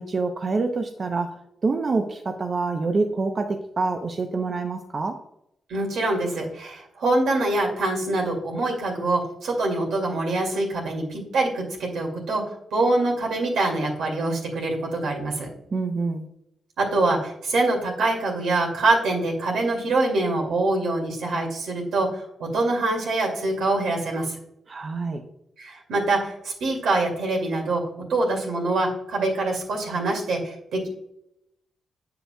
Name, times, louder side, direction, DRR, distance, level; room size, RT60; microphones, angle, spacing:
voice 1, 0.0-5.2 15.7-16.3 24.7-25.2, right 3 dB, 45° right, 5 dB, 0.6 m, -26 dB
voice 2, 5.7-15.5 16.8-24.4 25.6-27.8 28.1-30.9, right 2 dB, 90° right, 0 dB, 2.2 m, -24 dB
8.0 x 6.8 x 2.2 m, 0.78 s
cardioid pair, 90°, 0 cm